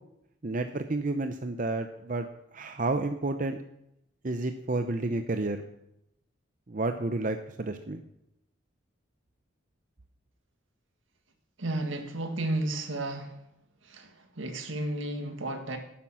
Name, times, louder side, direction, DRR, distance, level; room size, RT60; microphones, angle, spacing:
voice 1, 0.4-2.3 2.5-3.6 4.2-5.6 6.7-8.0, right 2 dB, 40° right, 7 dB, 0.6 m, -30 dB
voice 2, 11.6-13.3 13.8-15.8, right 1 dB, 75° right, 5 dB, 1.8 m, -33 dB
11.5 x 10.5 x 6.1 m, 0.81 s
head